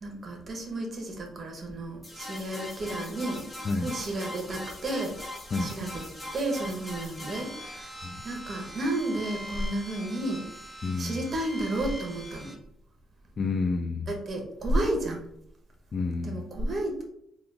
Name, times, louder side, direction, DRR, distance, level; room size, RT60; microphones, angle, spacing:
voice 1, 0.0-3.4 3.8-5.2 5.6-6.1 6.3-8.0 8.2-10.4 11.0-12.5 14.1-15.3 16.2-17.0, right 1 dB, 40° right, 1 dB, 1.2 m, -32 dB
sound 1, 2.0-12.5, left 1 dB, 20° left, 1.4 m, -41 dB
voice 2, 3.6-4.0 5.5-5.8 8.0-8.2 10.8-11.2 13.4-14.1 15.9-16.5, left 3 dB, 40° left, 4 dB, 0.3 m, -30 dB
3.9 x 2.4 x 3.4 m, 0.75 s
cardioid pair, 90°, 0 cm